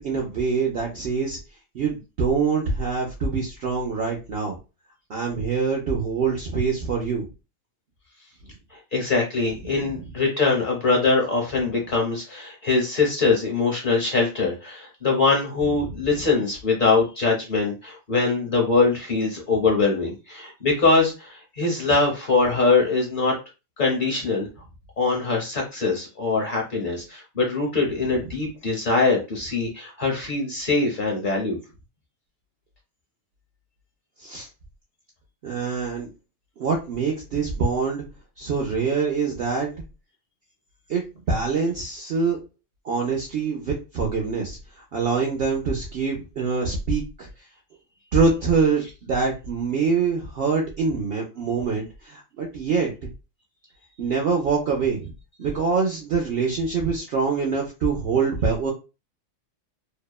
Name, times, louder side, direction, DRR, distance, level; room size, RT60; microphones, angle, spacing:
voice 1, 0.0-1.4 1.7-4.6 5.1-7.2 34.2-34.5 35.4-36.1 36.6-38.0 38.4-39.7 40.9-42.4 42.8-44.6 44.9-47.3 48.1-53.1 54.0-55.1 55.4-58.7, right 5 dB, 65° right, 0 dB, 0.6 m, -24 dB
voice 2, 8.9-23.3 23.8-24.5 25.0-31.6, left 3 dB, 45° left, 0 dB, 0.8 m, -22 dB
2.7 x 2.1 x 2.2 m, 0.29 s
omnidirectional pair, 1.4 m